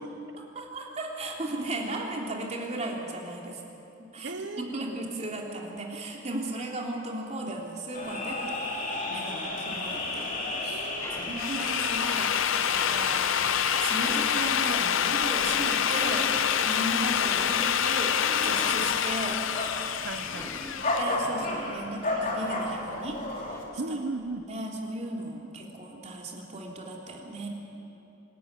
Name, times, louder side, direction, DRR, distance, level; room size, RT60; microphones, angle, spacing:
voice 1, 0.4-3.6 4.0-8.6 9.1-10.9 11.2-16.3 16.6-19.4 20.6-20.7 21.0-23.2 24.5-27.5, right 2 dB, 35° right, -1 dB, 3.2 m, -36 dB
voice 2, 4.2-4.7 10.7-11.1 20.0-20.7 23.8-24.4, right 3 dB, 65° right, 9 dB, 1.2 m, -36 dB
sound 1, 7.9-23.6, left 2 dB, 45° left, 3.2 m, -33 dB
sound 2, 10.3-19.5 19.7-24.4, left 1 dB, 15° left, 1.5 m, -48 dB
Drill, 11.2-21.0, left 9 dB, 85° left, 0.5 m, -27 dB
25.5 x 13.5 x 9.3 m, 2.9 s
head